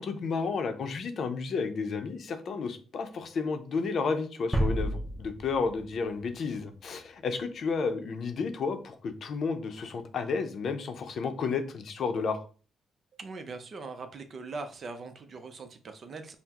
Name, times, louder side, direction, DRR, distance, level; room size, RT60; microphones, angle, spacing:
voice 1, 0.0-12.4, left 4 dB, 60° left, 8 dB, 0.6 m, -32 dB
sound 1, 4.5-6.4, right 1 dB, ahead, 0.7 m, -31 dB
voice 2, 13.2-16.3, right 3 dB, 50° right, 8 dB, 0.6 m, -41 dB
5.6 x 2.1 x 2.9 m, 0.39 s
cardioid pair, 95°, 0 cm